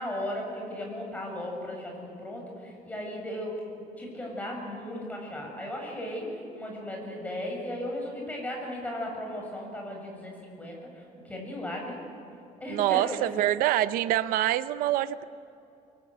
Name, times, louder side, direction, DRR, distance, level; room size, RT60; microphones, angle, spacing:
voice 1, 0.0-10.8 11.2-12.0 12.6-13.3, left 1 dB, 10° left, 0 dB, 7.6 m, -36 dB
voice 2, 12.7-15.2, right 14 dB, 80° right, 13 dB, 0.7 m, -25 dB
25.5 x 24.0 x 9.5 m, 2.7 s
cardioid pair, 150°, 14 cm